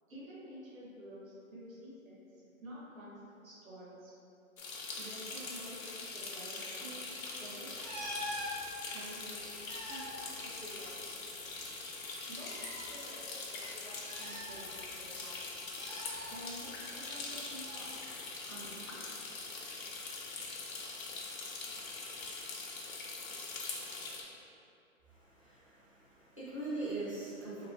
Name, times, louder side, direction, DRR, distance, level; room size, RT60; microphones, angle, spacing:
voice 1, 0.1-4.1 5.0-8.0 8.9-9.6 9.9-11.0 12.3-15.4 16.3-17.9 18.5-19.1, right 1 dB, 80° right, -7 dB, 1.0 m, -50 dB
sound 1, 4.6-24.2, left 3 dB, 85° left, 0.7 m, -43 dB
sound 2, 7.8-8.6 9.5-11.2 11.4-11.5 12.3-12.8 14.0-15.0 15.8-16.3 17.6-17.8, equal, 35° right, 0.4 m, -43 dB
voice 2, 25.1-27.7, right 2 dB, 25° left, -11 dB, 0.4 m, -41 dB
3.0 x 2.9 x 2.7 m, 2.8 s
hypercardioid pair, 165°, 40 cm